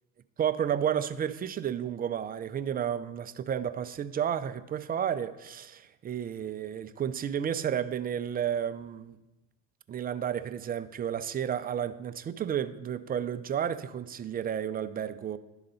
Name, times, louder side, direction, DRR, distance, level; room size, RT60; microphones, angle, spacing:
voice 1, 0.4-9.2 9.9-15.4, right 9 dB, 25° right, 12 dB, 0.4 m, -32 dB
11.5 x 4.0 x 5.5 m, 1.0 s
supercardioid pair, 105°, 37 cm